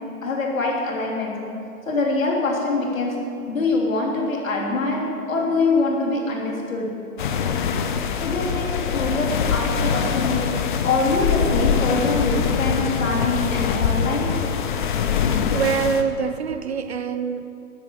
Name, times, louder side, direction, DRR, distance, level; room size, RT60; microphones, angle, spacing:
voice 1, 0.2-1.5 1.9-3.2 3.5-7.0 8.2-10.5 10.8-14.4, left 3 dB, 60° left, -1 dB, 3.4 m, -24 dB
sound 1, 7.2-16.0, left 7 dB, 35° left, 0.8 m, -23 dB
voice 2, 15.1-17.4, right 6 dB, 45° right, 10 dB, 0.8 m, -25 dB
13.5 x 9.6 x 7.8 m, 2.6 s
figure-of-eight pair, 125°, 44 cm